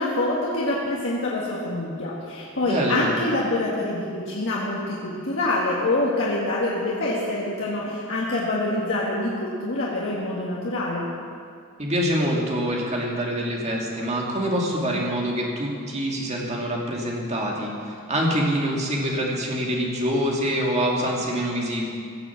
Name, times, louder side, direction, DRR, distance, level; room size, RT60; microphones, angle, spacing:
voice 1, 0.0-11.1, left 2 dB, 60° left, -5 dB, 1.7 m, -26 dB
voice 2, 2.6-3.1 11.8-21.9, equal, 30° right, -2 dB, 2.2 m, -25 dB
16.5 x 7.0 x 7.1 m, 2.3 s
head